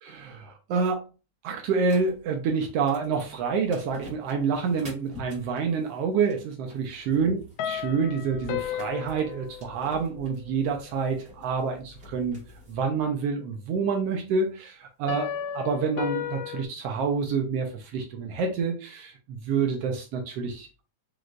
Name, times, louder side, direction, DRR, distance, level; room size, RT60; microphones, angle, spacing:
voice 1, 0.0-1.1 1.4-7.4 7.6-12.4 12.7-20.8, right 5 dB, 80° right, 3 dB, 1.4 m, -28 dB
sound 1, 1.8-12.8, left 2 dB, 35° right, 1.3 m, -48 dB
sound 2, 7.6-10.2 15.1-16.6, left 10 dB, 80° left, 1.8 m, -34 dB
5.1 x 3.2 x 2.4 m, 0.32 s
omnidirectional pair, 3.5 m